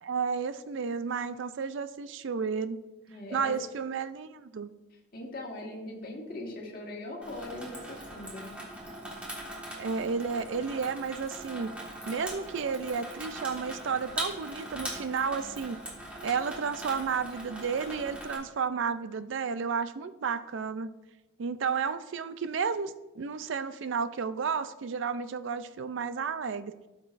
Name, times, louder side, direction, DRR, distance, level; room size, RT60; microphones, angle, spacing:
voice 1, 0.0-2.8 3.3-4.7 9.7-11.7 12.1-15.8 16.2-20.9 21.4-26.7, right 5 dB, 60° right, 13 dB, 0.4 m, -32 dB
voice 2, 3.1-3.5 5.1-8.5, left 1 dB, 45° left, -1 dB, 1.6 m, -40 dB
Water tap faucet / Sink (filling or washing), 7.2-18.4, right 1 dB, 5° right, 1.5 m, -41 dB
13.5 x 6.0 x 2.5 m, 1.1 s
head